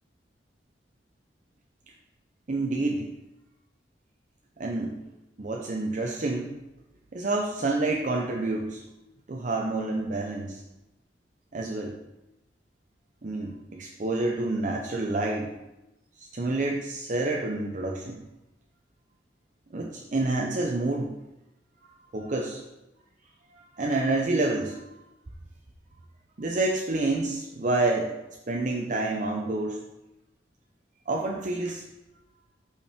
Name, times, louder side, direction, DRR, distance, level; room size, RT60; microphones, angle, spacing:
voice 1, 2.5-3.1 4.6-4.9 5.4-6.6 7.1-8.8 9.3-10.6 11.5-12.0 13.2-15.5 16.2-18.2 19.7-21.1 22.1-22.6 23.8-24.9 26.4-28.1 28.5-29.8 31.1-31.8, right 2 dB, 45° right, -1 dB, 0.6 m, -28 dB
5.5 x 5.1 x 4.3 m, 0.94 s
head